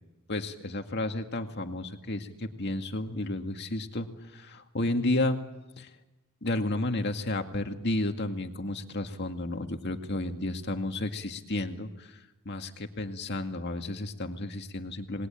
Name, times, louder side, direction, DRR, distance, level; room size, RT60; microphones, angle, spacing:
voice 1, 0.3-4.1 4.3-5.4 5.8-5.9 6.4-12.1 12.5-15.3, left 2 dB, 55° left, 5 dB, 2.1 m, -32 dB
27.5 x 21.0 x 9.1 m, 1.1 s
head